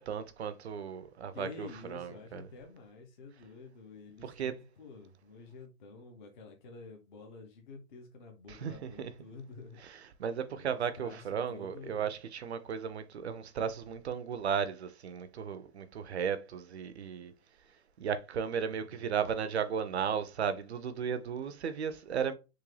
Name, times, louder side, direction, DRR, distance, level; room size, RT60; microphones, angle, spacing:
voice 1, 0.0-2.5 4.2-4.6 8.5-9.1 9.8-17.3 18.0-22.3, right 7 dB, 50° right, 0.4 m, -35 dB
voice 2, 1.3-9.8 10.5-12.1 18.6-19.2, left 4 dB, 35° left, 0.5 m, -50 dB
3.6 x 2.2 x 3.1 m
hypercardioid pair, 140°, 46 cm